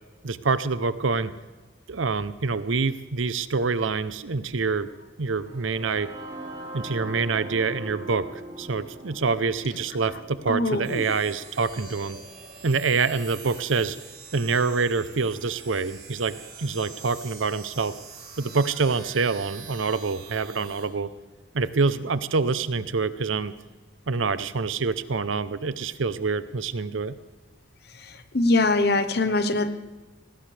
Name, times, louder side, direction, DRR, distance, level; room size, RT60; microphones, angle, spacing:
voice 1, 0.2-1.3 1.9-4.9 5.2-6.1 6.7-8.3 8.6-12.2 12.6-14.0 14.3-17.9 18.4-21.1 21.5-23.5 24.1-27.1, right 4 dB, 85° right, 14 dB, 0.7 m, -26 dB
sound 1, 5.3-13.2, right 1 dB, 30° right, 5.0 m, -42 dB
voice 2, 10.5-11.0 28.3-29.7, left 2 dB, 55° left, 10 dB, 1.0 m, -22 dB
sound 2, 10.8-20.9, right 5 dB, 45° right, 3.4 m, -44 dB
19.0 x 17.0 x 3.4 m, 1.3 s
head